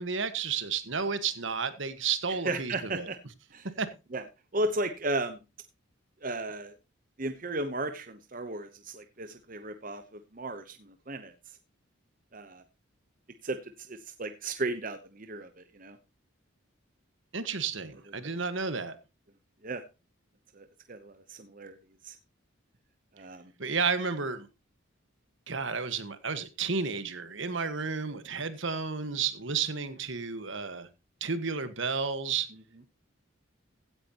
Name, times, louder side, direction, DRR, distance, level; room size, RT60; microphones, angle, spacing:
voice 1, 0.0-3.1 3.8-3.9 17.3-19.0 23.6-24.5 25.5-30.9 31.2-32.5, right 5 dB, 65° right, 1.6 m, -32 dB
voice 2, 2.5-3.2 3.5-3.7 4.1-4.2 4.5-5.4 6.2-6.7 7.2-11.3 12.3-12.6 13.4-16.0 19.6-19.8 20.5-21.8 22.0-22.2 23.2-23.4, right 2 dB, 40° right, 0.9 m, -35 dB
16.0 x 9.6 x 3.0 m
head